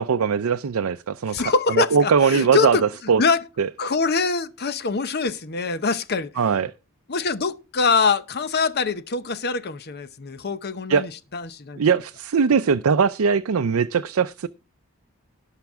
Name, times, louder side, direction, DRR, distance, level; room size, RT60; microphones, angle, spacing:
voice 1, 0.0-1.4 1.7-2.8 3.1-3.2 3.6-3.7 6.4-6.7 10.9-11.1 11.8-14.5, right 6 dB, 75° right, 0.5 m, -20 dB
voice 2, 1.3-3.4 3.8-6.3 7.1-11.8, left 4 dB, 50° left, 0.8 m, -24 dB
17.5 x 5.9 x 3.5 m
head